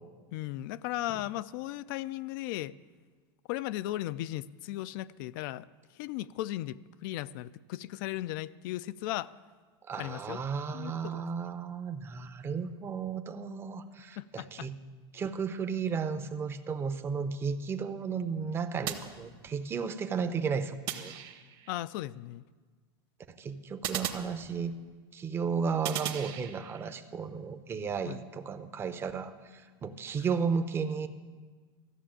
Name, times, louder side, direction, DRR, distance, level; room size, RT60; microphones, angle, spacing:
voice 1, 0.3-2.7 3.5-5.7 5.9-9.3 10.0-10.4 10.7-11.2 14.2-14.7 21.7-22.4 28.1-28.2 30.2-30.3, left 15 dB, 55° left, 16 dB, 0.4 m, -36 dB
voice 2, 9.9-14.7 15.1-21.1 23.3-24.7 25.1-31.1, right 6 dB, 20° right, 9 dB, 0.6 m, -34 dB
sound 1, 18.9-19.8 20.9-21.7 23.8-25.0 25.8-26.9, right 10 dB, 40° right, 1.0 m, -38 dB
14.0 x 6.7 x 8.8 m, 1.4 s
supercardioid pair, 145°, 13 cm